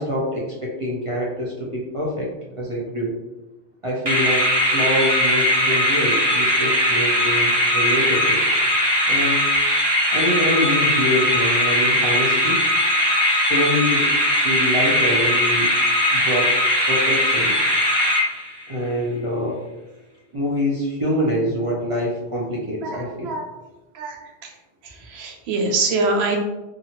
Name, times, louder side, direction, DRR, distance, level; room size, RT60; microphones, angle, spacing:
voice 1, 0.0-2.3 2.6-3.1 3.8-8.4 9.1-9.4 10.1-12.6 13.3-15.7 16.1-16.5 16.9-17.6 18.7-19.6 20.3-23.4, left 1 dB, 45° right, -5 dB, 0.4 m, -25 dB
sound 1, 4.1-18.7, left 1 dB, 25° right, 0.8 m, -19 dB
voice 2, 22.8-23.5 23.9-24.5 24.8-26.4, right 3 dB, 70° right, 2 dB, 0.8 m, -25 dB
2.7 x 2.4 x 2.8 m, 1.1 s
omnidirectional pair, 1.2 m